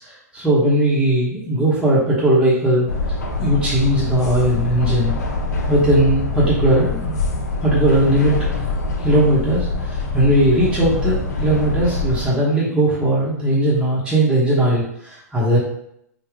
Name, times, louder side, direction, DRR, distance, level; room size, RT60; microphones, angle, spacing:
voice 1, 0.0-2.9 3.4-5.1 5.7-7.2 7.6-8.4 9.0-15.6, right 1 dB, 10° right, -9 dB, 1.0 m, -18 dB
sound 1, 2.9-12.3, left 2 dB, 85° left, 0.6 m, -24 dB
3.5 x 2.4 x 3.3 m, 0.73 s
hypercardioid pair, 115°, 9 cm